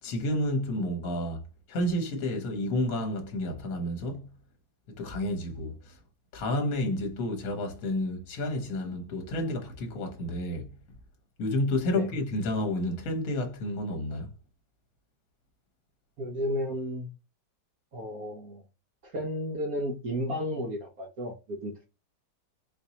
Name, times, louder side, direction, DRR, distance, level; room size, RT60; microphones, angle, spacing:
voice 1, 0.0-1.4 1.7-4.3 4.9-6.0 6.3-10.7 11.4-14.3, left 1 dB, 60° left, 1.2 m, -30 dB
voice 2, 16.2-17.1 17.9-18.6 19.0-21.3 21.6-21.9, equal, 60° right, 1.1 m, -33 dB
4.2 x 2.6 x 2.8 m
omnidirectional pair, 1.9 m